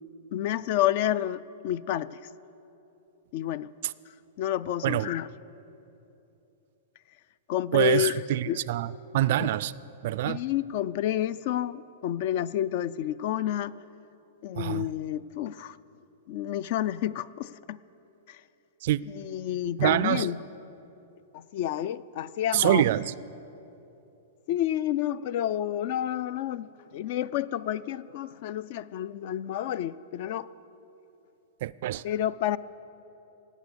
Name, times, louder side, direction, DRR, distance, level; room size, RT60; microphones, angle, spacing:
voice 1, 0.3-2.2 3.3-3.7 4.4-5.3 7.5-8.2 8.5-8.6 9.4-9.5 10.3-13.8 14.4-15.8 16.3-17.8 18.3-18.4 19.1-20.4 21.3-22.8 24.5-30.5 32.0-32.6, left 12 dB, 45° left, 0.3 m, -29 dB
voice 2, 7.7-9.7 10.0-10.4 14.6-14.9 18.8-19.0 19.8-20.3 22.5-23.1 31.6-32.0, right 14 dB, 55° right, 0.3 m, -25 dB
18.5 x 8.3 x 6.9 m
hypercardioid pair, 155°, 0 cm